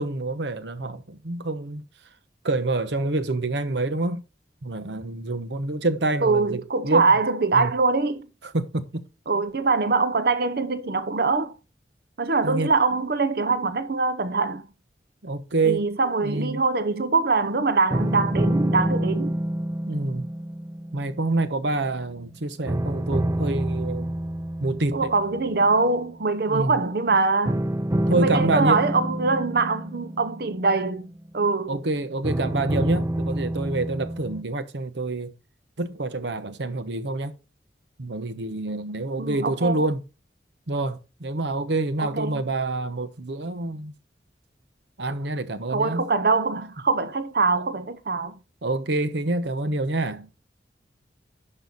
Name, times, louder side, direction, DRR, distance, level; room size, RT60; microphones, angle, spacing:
voice 1, 0.0-1.8 2.4-4.2 4.6-7.1 7.5-7.7 8.5-9.0 12.4-12.7 15.2-15.8 16.2-16.6 19.9-20.3 20.9-24.1 24.6-25.1 26.5-26.8 28.1-28.8 31.7-35.3 35.8-37.3 38.0-40.0 40.7-43.9 45.0-46.0 48.6-50.4, right 2 dB, 80° right, 1.0 m, -27 dB
voice 2, 6.2-8.3 9.3-11.5 12.2-14.7 15.6-19.4 24.9-27.7 28.1-31.8 39.2-39.9 42.0-42.4 45.7-48.4, right 3 dB, 60° right, 0.8 m, -23 dB
sound 1, 17.9-22.3 22.7-25.9 27.5-31.5 32.2-34.4, right 1 dB, 20° right, 0.5 m, -28 dB
11.0 x 5.6 x 4.0 m
head